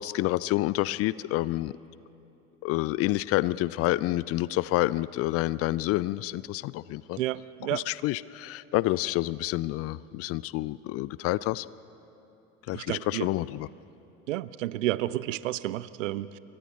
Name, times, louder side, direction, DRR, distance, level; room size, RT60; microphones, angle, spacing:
voice 1, 0.0-1.7 2.6-7.2 7.7-11.7 12.7-13.7, left 17 dB, 35° left, 20 dB, 0.4 m, -28 dB
voice 2, 7.2-7.8 12.7-13.3 14.3-16.4, right 15 dB, 70° right, 18 dB, 0.7 m, -31 dB
28.0 x 24.0 x 4.2 m, 2.9 s
figure-of-eight pair, 70°, 40 cm